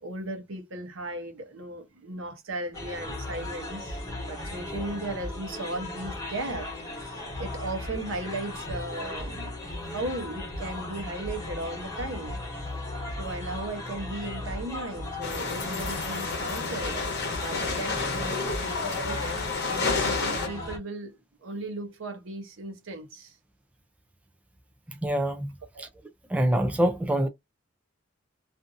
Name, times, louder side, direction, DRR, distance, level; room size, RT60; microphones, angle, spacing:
voice 1, 0.0-6.7 7.0-12.7 13.2-19.4 20.0-23.4 25.7-25.8, right 2 dB, 80° right, 0.9 m, -37 dB
sound 1, 2.7-20.8, left 2 dB, 15° left, 0.9 m, -36 dB
sound 2, 15.2-20.5, left 4 dB, 55° left, 0.8 m, -30 dB
voice 2, 24.9-25.5 25.8-25.9 26.3-27.3, right 1 dB, 5° right, 0.3 m, -25 dB
2.6 x 2.5 x 2.5 m
head